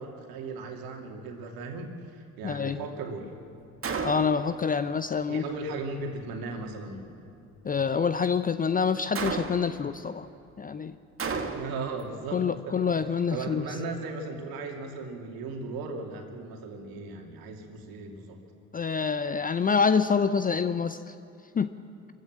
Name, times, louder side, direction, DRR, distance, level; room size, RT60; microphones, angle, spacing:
voice 1, 0.0-3.3 5.3-7.3 11.5-18.4, right 3 dB, 55° right, 2 dB, 2.9 m, -37 dB
voice 2, 2.4-2.8 4.0-5.4 7.6-10.3 10.6-11.0 12.3-13.6 18.7-21.1 21.5-21.7, left 6 dB, 20° left, 13 dB, 0.6 m, -26 dB
Gunshot gunfire, 3.8-4.5 9.1-9.8 11.2-11.9, right 4 dB, 30° right, 1.8 m, -32 dB
24.5 x 15.0 x 7.6 m, 2.5 s
figure-of-eight pair, 50°, 42 cm